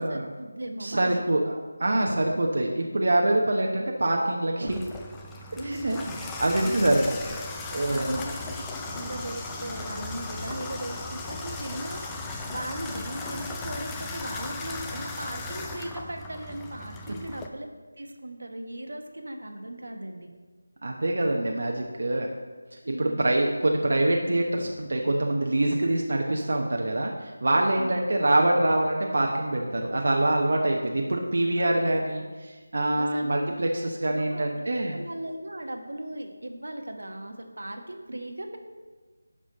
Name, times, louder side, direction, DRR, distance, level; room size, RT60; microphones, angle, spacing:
voice 1, 0.0-1.2 5.5-6.2 6.6-7.1 7.9-8.6 8.9-12.0 12.2-17.7 18.0-20.3 22.8-23.1 27.8-28.1 31.6-32.0 32.9-33.3 34.1-38.6, right 1 dB, 75° right, 4 dB, 1.3 m, -38 dB
voice 2, 0.8-1.5 1.8-4.8 5.6-6.0 6.4-7.0 7.7-8.2 20.8-22.3 23.0-32.2 32.7-35.0, right 1 dB, 60° right, 0 dB, 1.0 m, -25 dB
Water tap faucet / Bathtub (filling or washing), 4.7-17.5, left 3 dB, 10° left, 0.5 m, -37 dB
11.0 x 5.0 x 5.3 m, 1.4 s
figure-of-eight pair, 170°, 0 cm